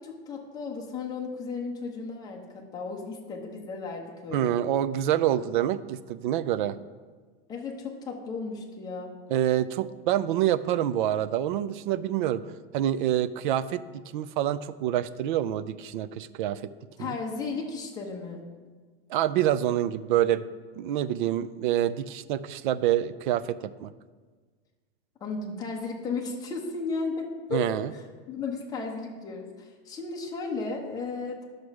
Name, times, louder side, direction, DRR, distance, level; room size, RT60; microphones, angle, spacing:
voice 1, 0.0-4.5 7.5-9.1 17.0-18.4 25.2-27.6 27.9-31.5, left 4 dB, 10° left, 0 dB, 0.9 m, -35 dB
voice 2, 4.3-6.8 9.3-12.4 12.7-13.8 14.1-16.7 17.0-17.2 19.1-20.4 20.8-23.9 27.5-27.9, right 11 dB, 55° right, 15 dB, 0.4 m, -26 dB
10.5 x 6.6 x 4.7 m, 1.4 s
supercardioid pair, 175°, 31 cm